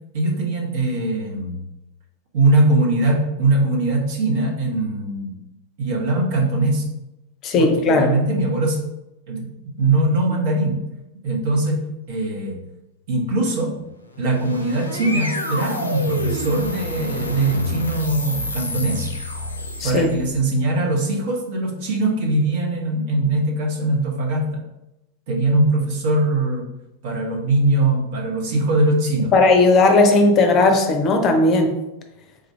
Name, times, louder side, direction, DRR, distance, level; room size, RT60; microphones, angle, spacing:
voice 1, 0.1-1.6 2.3-5.3 5.8-6.9 7.6-8.8 9.3-9.5 9.8-10.8 11.2-12.6 13.1-13.8 14.2-19.1 19.8-24.6 25.3-26.7 27.0-29.3, right 2 dB, 50° right, -1 dB, 1.0 m, -21 dB
voice 2, 7.4-8.2 19.8-20.1 29.3-31.8, left 3 dB, 30° left, 5 dB, 0.6 m, -16 dB
sound 1, 14.1-20.4, left 2 dB, 80° left, 0.5 m, -29 dB
3.6 x 2.5 x 4.3 m, 0.91 s
figure-of-eight pair, 90°, 0 cm